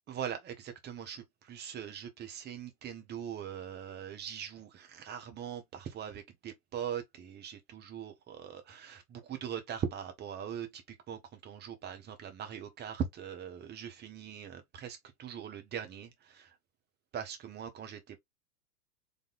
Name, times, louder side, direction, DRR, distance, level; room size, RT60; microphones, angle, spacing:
voice 1, 0.1-10.8 11.1-16.5 17.1-18.2, right 8 dB, 20° right, 1.1 m, -41 dB
4.3 x 3.3 x 2.4 m
figure-of-eight pair, 95°, 45 cm